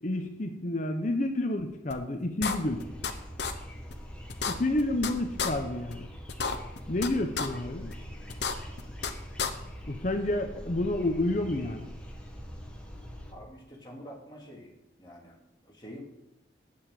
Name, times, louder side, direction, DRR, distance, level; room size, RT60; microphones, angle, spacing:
voice 1, 0.0-2.8 4.4-6.1 6.9-7.9 9.9-11.9, left 1 dB, 40° left, 6 dB, 0.8 m, -29 dB
sound 1, 1.9-2.0 2.4-3.1 3.4-3.5 3.9-4.0 4.3-5.1 5.4-5.5 5.9-6.0 6.3-7.1 7.4-7.5 7.9-8.0 8.3-9.1 9.4-9.5, left 5 dB, 65° left, 0.9 m, -30 dB
sound 2, 2.6-13.3, equal, 5° left, 1.3 m, -43 dB
voice 2, 13.3-14.7 15.0-15.4 15.6-16.0, equal, 25° left, -2 dB, 2.6 m, -46 dB
8.8 x 7.6 x 7.5 m, 0.89 s
head